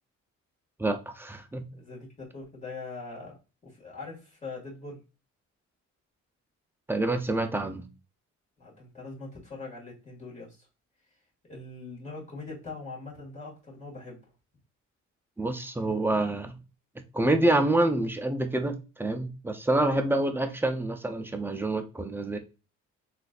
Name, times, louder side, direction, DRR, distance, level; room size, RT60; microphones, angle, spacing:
voice 1, 0.8-1.6 6.9-7.8 15.4-16.6 17.1-22.4, right 2 dB, 5° right, 0.5 m, -27 dB
voice 2, 1.7-3.4 3.6-5.0 8.6-10.7 11.5-14.2, left 3 dB, 25° left, 1.9 m, -42 dB
3.7 x 2.6 x 2.4 m
cardioid pair, 90°, 30 cm